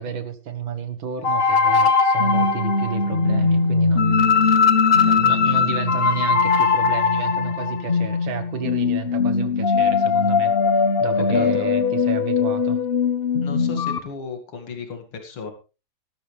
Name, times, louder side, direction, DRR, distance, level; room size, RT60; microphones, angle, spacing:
voice 1, 0.0-4.6 5.1-10.5 11.0-12.8, right 8 dB, 65° right, 9 dB, 2.2 m, -31 dB
sound 1, 1.2-14.0, left 5 dB, 45° left, 0.8 m, -20 dB
voice 2, 11.1-11.7 13.4-15.5, left 4 dB, 80° left, 6 dB, 3.1 m, -35 dB
17.0 x 12.5 x 3.4 m, 0.32 s
omnidirectional pair, 2.3 m